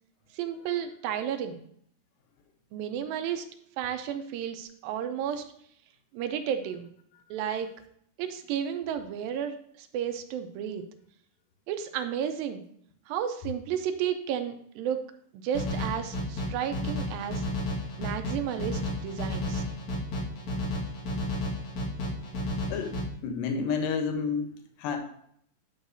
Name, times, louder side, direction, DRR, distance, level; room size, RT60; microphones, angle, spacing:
voice 1, 0.3-1.6 2.7-3.5 3.8-5.4 6.1-6.9 7.3-7.7 8.2-10.8 11.7-12.6 13.1-15.0 15.4-17.5 18.0-19.6, right 9 dB, 80° right, 7 dB, 2.3 m, -32 dB
sound 1, 15.5-23.0, left 1 dB, 60° left, 2.8 m, -32 dB
voice 2, 23.2-24.5 24.8-25.0, left 5 dB, 75° left, 5 dB, 2.5 m, -29 dB
10.0 x 6.4 x 2.6 m, 0.68 s
omnidirectional pair, 4.2 m